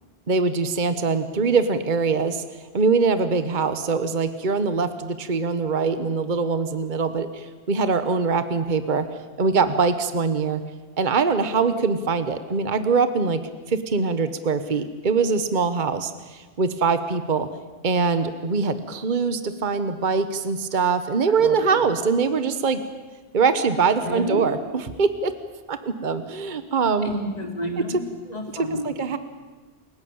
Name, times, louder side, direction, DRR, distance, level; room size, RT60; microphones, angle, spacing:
voice 1, 0.3-2.4 2.7-9.0 9.4-10.6 11.0-13.4 13.7-17.5 17.8-22.8 23.3-25.3 25.7-27.1 28.8-29.2, right 5 dB, 50° right, 11 dB, 1.3 m, -23 dB
voice 2, 21.3-21.9 24.0-24.5 27.0-28.0 28.3-28.9, left 1 dB, 40° left, 2 dB, 3.7 m, -30 dB
29.0 x 16.5 x 8.7 m, 1.3 s
omnidirectional pair, 1.1 m